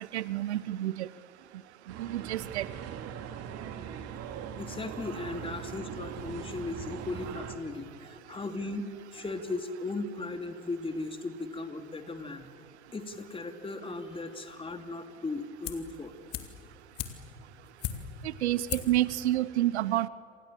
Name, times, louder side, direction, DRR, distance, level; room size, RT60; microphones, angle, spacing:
voice 1, 0.1-1.1 2.0-2.6 18.4-20.1, right 14 dB, 70° right, 19 dB, 0.8 m, -28 dB
sound 1, 1.9-7.6, right 8 dB, 45° right, 2.6 m, -40 dB
voice 2, 4.6-12.5 12.9-16.1, left 2 dB, 15° left, 6 dB, 2.8 m, -37 dB
sound 2, 15.6-16.0 16.3-18.3 18.7-19.0 19.3-19.4, left 10 dB, 45° left, 2.7 m, -37 dB
28.0 x 27.0 x 7.5 m, 2.4 s
figure-of-eight pair, 80°, 34 cm